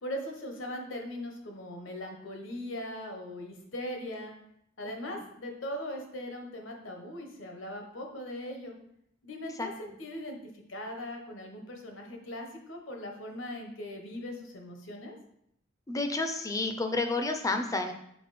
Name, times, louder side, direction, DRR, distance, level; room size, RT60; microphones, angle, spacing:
voice 1, 0.0-4.3 4.8-8.7 9.2-15.1, left 1 dB, 80° left, 3 dB, 1.1 m, -40 dB
voice 2, 15.9-17.9, left 3 dB, 15° left, 6 dB, 0.5 m, -30 dB
5.9 x 3.9 x 4.2 m, 0.75 s
head